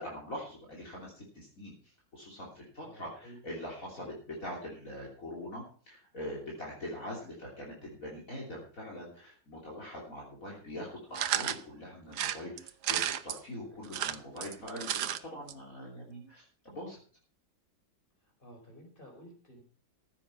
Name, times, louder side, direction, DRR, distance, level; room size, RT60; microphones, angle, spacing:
voice 1, 0.0-17.0, left 1 dB, 45° left, -3 dB, 3.7 m, -43 dB
voice 2, 2.8-3.4 4.0-4.1 13.8-14.2 18.2-19.6, equal, 25° left, 2 dB, 4.8 m, -53 dB
sound 1, 11.1-11.6 12.1-13.4 13.8-15.2 15.5-15.6 15.8-15.9, right 11 dB, 65° right, 1.3 m, -32 dB
15.0 x 8.7 x 5.7 m, 0.43 s
omnidirectional pair, 2.0 m